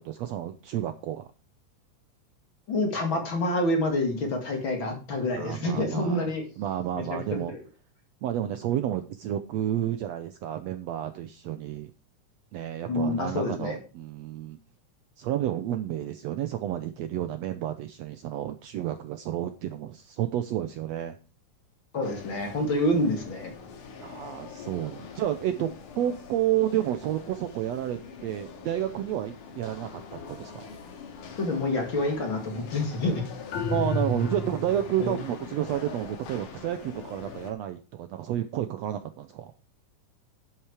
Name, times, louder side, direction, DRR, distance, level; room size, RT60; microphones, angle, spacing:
voice 1, 0.1-1.3 5.4-6.3 6.6-7.5 8.2-11.9 12.5-14.6 15.2-21.2 24.0-30.0 30.3-30.6 33.7-39.5, right 11 dB, 75° right, 9 dB, 1.6 m, -30 dB
voice 2, 2.7-6.4 6.9-7.6 12.9-13.8 21.9-23.5 31.4-33.2 35.0-35.2, left 1 dB, 40° left, 3 dB, 2.6 m, -27 dB
sound 1, 22.0-37.5, left 5 dB, 85° left, 3.2 m, -44 dB
sound 2, 33.5-35.0, left 2 dB, 70° left, 2.4 m, -30 dB
10.5 x 8.1 x 4.9 m, 0.35 s
omnidirectional pair, 3.6 m